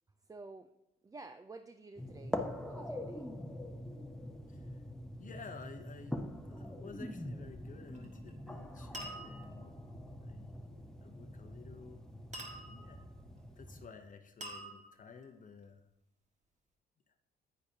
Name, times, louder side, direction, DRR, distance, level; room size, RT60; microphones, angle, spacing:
voice 1, 0.2-0.7 1.0-2.4 2.6-3.3, right 3 dB, 15° right, 9 dB, 0.4 m, -51 dB
sound 1, 2.0-13.9, left 1 dB, 5° left, 0.8 m, -44 dB
voice 2, 4.5-4.8 5.2-6.2 6.5-9.8 10.2-10.6 11.0-12.0 12.6-13.1 13.6-15.8 17.1-17.2, left 5 dB, 40° left, 6 dB, 0.7 m, -53 dB
sound 2, 7.9-8.3 8.9-9.7 12.3-13.0 14.4-15.2, right 1 dB, 35° right, 1.7 m, -46 dB
9.8 x 8.8 x 2.8 m, 0.84 s
cardioid pair, 90°, 20 cm